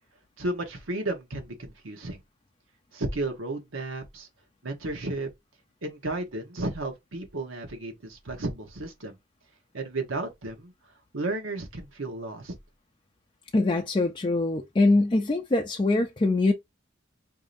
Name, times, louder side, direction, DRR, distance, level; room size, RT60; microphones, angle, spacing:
voice 1, 0.4-2.2 2.9-4.3 4.6-5.3 5.8-9.1 9.7-10.7 11.1-12.5, right 2 dB, 85° right, 1.1 m, -33 dB
voice 2, 13.5-16.5, left 2 dB, 25° left, 0.4 m, -23 dB
4.7 x 2.7 x 2.5 m
head